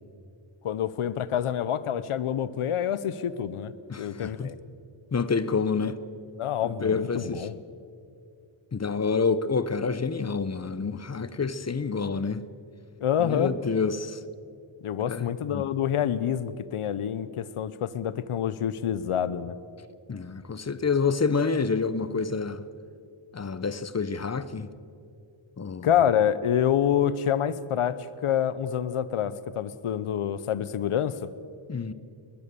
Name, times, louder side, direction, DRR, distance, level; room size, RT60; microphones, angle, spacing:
voice 1, 0.6-3.7 4.0-4.6 6.4-7.6 13.0-13.5 14.8-19.5 25.8-31.3, left 9 dB, 85° left, 0.9 m, -27 dB
voice 2, 3.9-4.5 5.1-6.0 6.6-7.5 8.7-12.4 13.2-14.2 15.1-15.6 20.1-22.6 23.3-24.7 25.6-25.9 31.7-31.9, left 5 dB, 30° left, 0.8 m, -28 dB
22.0 x 20.0 x 6.9 m
wide cardioid pair, 110°, 50 cm